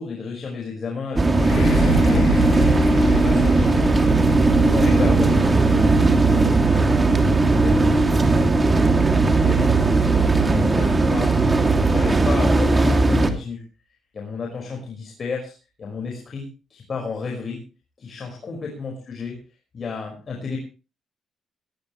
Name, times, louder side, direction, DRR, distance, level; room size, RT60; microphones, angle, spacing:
voice 1, 0.0-2.5 3.0-3.9 4.6-8.8 9.3-11.4 11.9-13.6 14.1-16.4 16.7-17.6 18.0-19.4 19.7-20.6, left 5 dB, 45° left, 1 dB, 5.5 m, -32 dB
sound 1, 1.2-13.3, right 3 dB, 25° right, 2.8 m, -17 dB
sound 2, 1.4-9.1 9.7-9.8, left 4 dB, 90° left, 3.5 m, -29 dB
19.0 x 17.0 x 3.3 m, 0.33 s
cardioid pair, 90°, 0 cm